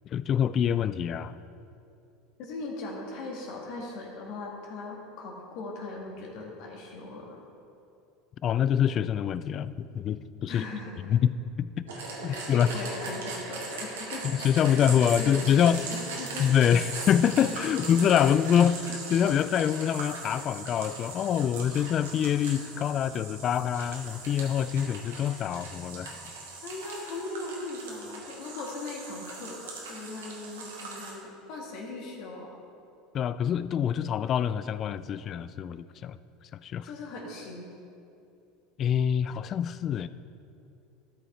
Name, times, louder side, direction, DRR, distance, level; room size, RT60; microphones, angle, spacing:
voice 1, 0.1-1.3 8.4-10.6 11.1-11.7 12.2-12.7 14.3-15.8 16.4-26.1 33.1-36.2 36.6-36.9 38.8-40.1, left 9 dB, 45° left, 15 dB, 0.3 m, -25 dB
voice 2, 2.4-7.4 10.5-11.0 12.3-14.4 14.6-14.8 15.2-16.5 17.4-17.8 18.1-18.2 26.6-32.6 36.8-37.7, left 2 dB, 65° left, -1 dB, 1.8 m, -39 dB
sound 1, 11.9-31.1, right 3 dB, 90° right, 1.7 m, -40 dB
13.0 x 5.6 x 4.3 m, 2.7 s
hypercardioid pair, 95°, 0 cm